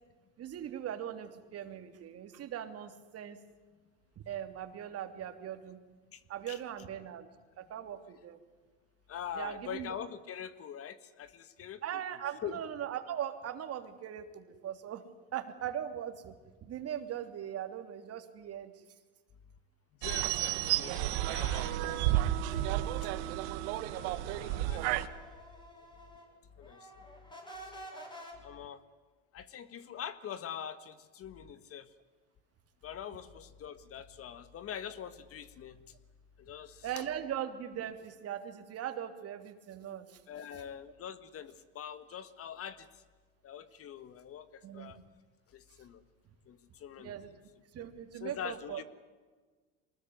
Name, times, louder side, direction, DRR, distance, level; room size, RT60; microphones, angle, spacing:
voice 1, 0.4-3.4 4.2-5.8 6.3-7.3 7.6-8.4 9.4-9.9 11.8-15.0 15.3-16.3 16.6-18.7 36.8-40.2 44.6-45.0 47.0-47.3 47.7-48.8, right 10 dB, 45° right, 8 dB, 3.1 m, -40 dB
voice 2, 6.1-6.6 9.1-11.8 12.4-12.6 20.0-23.1 23.9-25.1 26.6-27.0 28.4-28.8 29.3-31.9 32.8-35.9 36.4-37.0 40.3-43.0 43.4-45.0 45.5-46.0 46.5-47.1 47.8-47.9 48.2-48.8, left 9 dB, 40° left, 14 dB, 1.7 m, -44 dB
sound 1, 20.0-25.1, right 14 dB, 75° right, 1.7 m, -31 dB
sound 2, 21.7-26.3 26.6-28.3, right 1 dB, 15° left, 7.6 m, -51 dB
23.5 x 20.0 x 9.5 m, 1.4 s
supercardioid pair, 110°, 34 cm